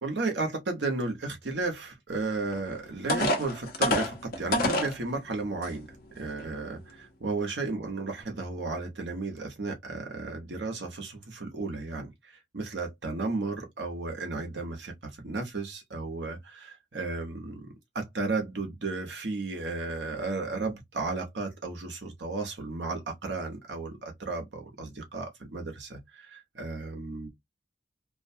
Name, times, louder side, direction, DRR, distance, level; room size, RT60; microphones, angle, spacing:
voice 1, 0.0-5.9 6.1-14.9 15.2-27.3, right 3 dB, 80° right, 1.0 m, -34 dB
sound 1, 2.5-2.6 3.1-4.9 5.6-5.7 6.2-6.4, left 1 dB, 50° left, 0.8 m, -27 dB
2.5 x 2.2 x 2.6 m
head